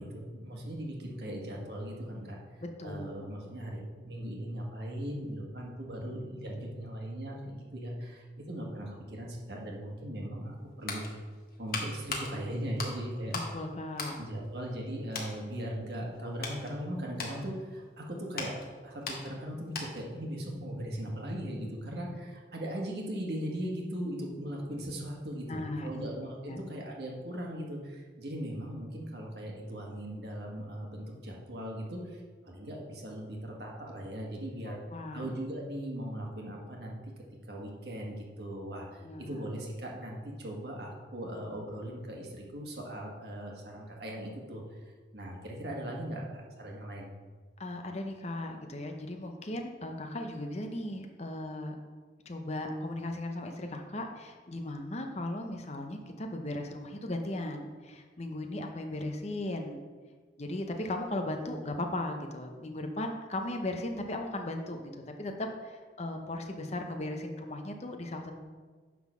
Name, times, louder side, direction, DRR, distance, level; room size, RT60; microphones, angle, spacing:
voice 1, 0.0-2.4 2.8-11.1 11.6-13.4 14.2-34.8 35.1-37.1 37.5-44.6 45.1-47.1, right 1 dB, 60° right, -1 dB, 1.5 m, -39 dB
voice 2, 2.8-3.3 13.5-14.2 25.5-26.0 26.4-26.6 34.6-35.3 39.0-39.3 47.6-51.7 52.3-59.8 60.4-68.3, left 1 dB, 35° left, 4 dB, 0.7 m, -37 dB
sound 1, 10.4-13.6 13.9-14.8 15.1-15.4 15.9-20.2 20.5-20.6, left 4 dB, 55° left, 1.4 m, -40 dB
9.4 x 3.9 x 6.1 m, 1.5 s
head